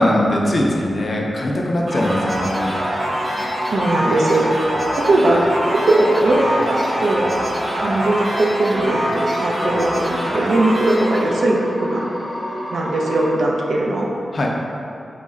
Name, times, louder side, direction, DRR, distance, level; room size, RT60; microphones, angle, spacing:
voice 1, 0.0-2.7 14.3-14.5, left 1 dB, 40° left, -1 dB, 0.4 m, -20 dB
sound 1, 1.9-11.6, equal, 55° right, 0.7 m, -25 dB
sound 2, 2.4-13.3, equal, 15° left, 0.8 m, -28 dB
voice 2, 3.7-4.5 4.9-7.3 7.8-12.0 12.7-14.1, right 2 dB, 90° right, -2 dB, 0.5 m, -19 dB
4.3 x 2.1 x 3.5 m, 2.6 s
wide cardioid pair, 175°, 0 cm